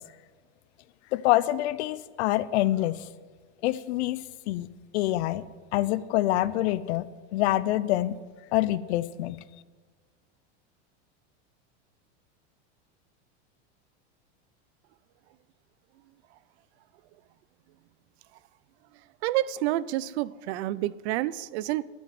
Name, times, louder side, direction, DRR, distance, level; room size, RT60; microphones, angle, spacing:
voice 1, 1.1-3.1 3.6-4.7 4.9-5.5 5.7-8.2 8.5-9.4, left 15 dB, 70° left, 17 dB, 0.8 m, -26 dB
voice 2, 19.2-21.8, right 15 dB, 70° right, 19 dB, 0.7 m, -29 dB
12.5 x 7.2 x 9.4 m, 1.4 s
supercardioid pair, 125°, 34 cm